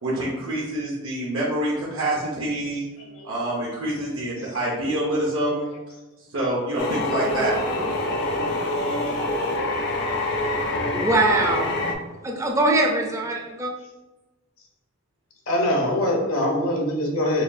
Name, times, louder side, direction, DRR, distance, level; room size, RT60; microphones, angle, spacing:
voice 1, 0.0-2.8 3.2-5.7 6.3-7.6, right 1 dB, 75° right, -6 dB, 0.7 m, -26 dB
voice 2, 3.0-3.3 3.8-3.9 4.4-4.9 15.5-17.4, left 1 dB, 80° left, 0 dB, 0.8 m, -24 dB
sound 1, 6.8-11.9, left 2 dB, 50° left, 0.5 m, -25 dB
voice 3, 10.9-11.7 12.2-13.7, right 2 dB, 15° right, 0 dB, 0.4 m, -22 dB
4.9 x 2.3 x 2.6 m, 1.1 s
head